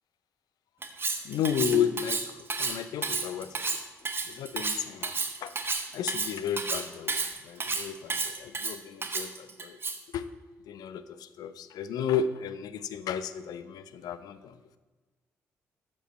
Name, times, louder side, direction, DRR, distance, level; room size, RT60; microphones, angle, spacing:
Cutlery silverware, 0.8-10.1, right 4 dB, 30° right, 1.0 m, -32 dB
voice 1, 1.2-2.2 2.6-3.5 4.4-5.1 5.4-5.5 5.9-9.3 9.6-9.8 10.1-10.2 10.7-11.0 11.4-14.4, left 8 dB, 55° left, 14 dB, 0.5 m, -32 dB
13.0 x 5.4 x 4.4 m, 1.3 s
figure-of-eight pair, 40°, 8 cm